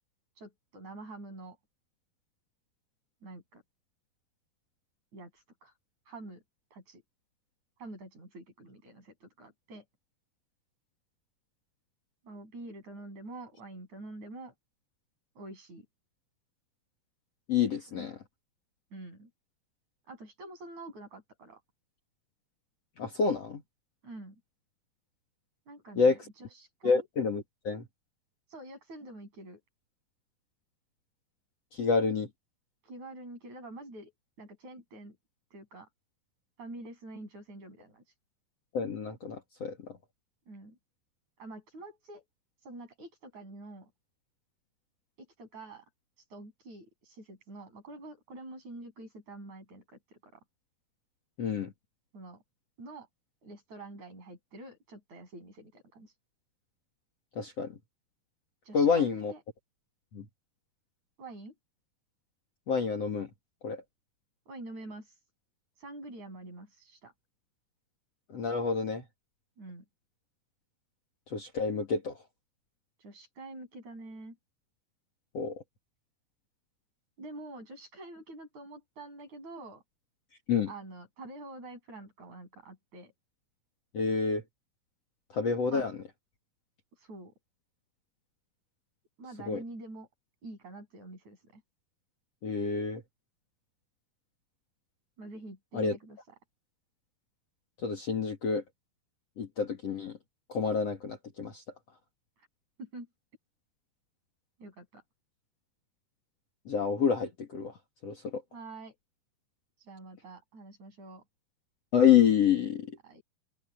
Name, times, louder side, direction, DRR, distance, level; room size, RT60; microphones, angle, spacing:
voice 1, 0.4-1.6 3.2-3.6 5.1-5.7 6.1-6.4 6.7-7.0 7.8-9.8 12.2-14.5 15.4-15.9 17.7-18.1 18.9-19.3 20.1-21.6 24.0-24.4 25.7-27.1 28.5-29.6 32.8-34.1 34.4-35.2 35.5-35.9 36.6-38.0 40.5-40.8 41.4-42.2 42.6-43.9 45.2-45.9 46.3-49.8 50.2-50.4 52.1-52.4 52.8-53.1 53.4-56.1 58.6-59.4 61.2-61.5 64.5-65.1 65.8-67.1 69.6-69.8 73.0-74.4 77.2-79.8 80.7-83.1 85.7-85.9 87.0-87.3 89.2-90.1 90.4-91.6 95.2-96.4 102.8-103.1 104.6-105.0 108.5-109.0 109.8-111.2 113.0-113.2, right 2 dB, 45° right, 9.4 m, -46 dB
voice 2, 17.5-18.1 23.0-23.6 26.0-26.2 26.8-27.9 31.7-32.3 38.7-39.8 51.4-51.7 57.4-57.7 58.7-59.3 60.1-60.2 62.7-63.3 63.6-63.8 68.3-69.0 71.3-72.2 75.3-75.6 80.5-80.7 83.9-84.4 85.3-86.0 89.5-89.6 92.4-93.0 95.7-96.0 97.8-98.6 99.4-100.2 100.5-101.6 106.7-107.7 108.0-108.4 111.9-113.0, left 6 dB, 45° left, 3.1 m, -28 dB
open air
omnidirectional pair, 4.5 m